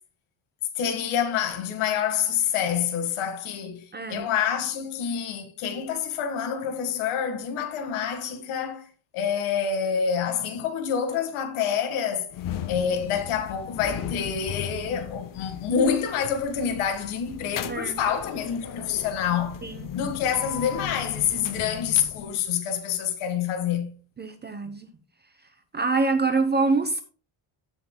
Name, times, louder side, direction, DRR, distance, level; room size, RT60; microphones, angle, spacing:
voice 1, 0.8-8.8 9.1-12.3 12.7-19.6 19.9-23.9, left 8 dB, 80° left, 1.8 m, -27 dB
voice 2, 3.9-4.3 17.7-18.0 19.6-19.9 24.2-24.9 25.7-27.0, right 3 dB, 20° right, 0.7 m, -25 dB
sound 1, 12.3-22.5, left 9 dB, 40° left, 0.7 m, -37 dB
15.5 x 7.0 x 2.2 m
cardioid pair, 155°, 49 cm